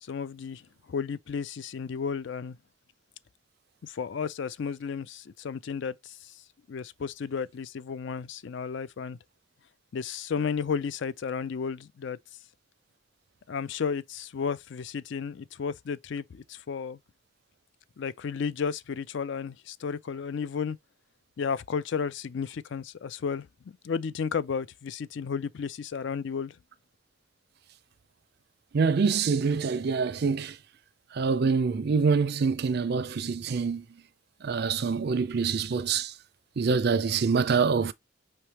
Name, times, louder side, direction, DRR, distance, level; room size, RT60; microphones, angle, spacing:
voice 1, 0.0-0.6 0.9-2.6 3.8-6.3 6.7-9.2 9.9-12.2 13.5-17.0 18.0-20.8 21.4-26.6, left 6 dB, 55° left, 0.4 m, -33 dB
voice 2, 28.7-30.5 31.1-33.8 34.4-36.1 36.6-37.9, right 5 dB, 50° right, 0.4 m, -25 dB
5.5 x 3.3 x 2.9 m
head